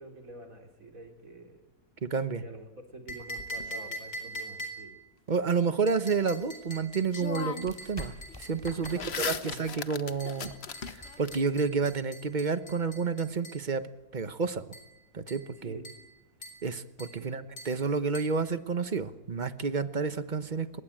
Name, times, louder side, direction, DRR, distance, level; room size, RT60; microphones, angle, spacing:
voice 1, 0.0-1.6 2.3-4.9 8.7-9.6 15.6-15.9 17.1-17.5, right 2 dB, 65° right, 3 dB, 4.1 m, -47 dB
voice 2, 2.0-2.4 5.3-9.3 9.6-10.5 11.2-13.8 14.1-14.6 15.1-15.8 16.6-20.8, right 5 dB, 35° right, 12 dB, 1.1 m, -30 dB
sound 1, 3.1-5.0 5.9-9.1 10.2-13.7 14.7-14.9 15.3-15.5 15.8-16.1 16.4-16.7 17.0-17.2 17.6-17.8 18.1-18.4, right 1 dB, 80° left, 5.0 m, -43 dB
sound 2, 3.1-4.4 6.6-6.7 7.1-7.9 8.2-11.4, left 6 dB, 50° left, 1.2 m, -38 dB
sound 3, 6.2-12.1, left 1 dB, 15° left, 3.4 m, -49 dB
24.5 x 21.5 x 8.9 m, 0.98 s
omnidirectional pair, 1.5 m